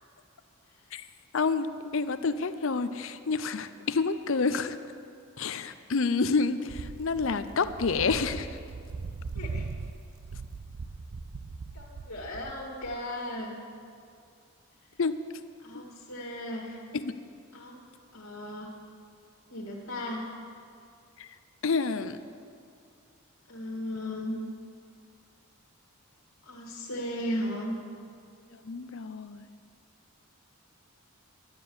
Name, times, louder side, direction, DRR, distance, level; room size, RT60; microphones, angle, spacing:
voice 1, 1.3-1.7 1.9-4.8 5.4-8.5 15.0-15.2 16.9-17.1 21.2-21.3 21.6-22.2 28.6-29.4, left 4 dB, 60° left, 12 dB, 0.6 m, -28 dB
sound 1, 6.7-13.0, right 4 dB, 65° right, 0.5 m, -39 dB
voice 2, 9.4-9.7 11.7-13.6 15.6-16.8 17.5-17.7 18.1-18.7 19.5-20.3 23.5-24.4 26.5-27.7, left 1 dB, 80° left, -4 dB, 1.9 m, -36 dB
11.5 x 9.7 x 7.0 m, 2.4 s
head